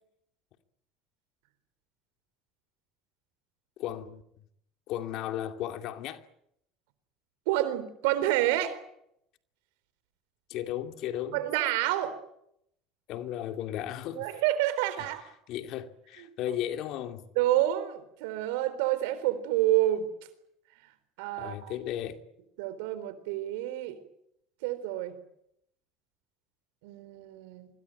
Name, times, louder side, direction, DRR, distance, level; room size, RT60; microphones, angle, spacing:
voice 1, 3.8-4.2 4.9-6.2 10.5-11.4 13.1-14.3 15.0-17.3 21.4-22.2, left 11 dB, 65° left, 2.5 m, -35 dB
voice 2, 7.5-8.8 11.3-12.2 14.2-15.2 17.4-20.1 21.2-21.7 22.6-24.0 24.6-25.1 26.8-27.7, right 14 dB, 80° right, 4.0 m, -28 dB
25.0 x 21.5 x 9.2 m
supercardioid pair, 90°, 0 cm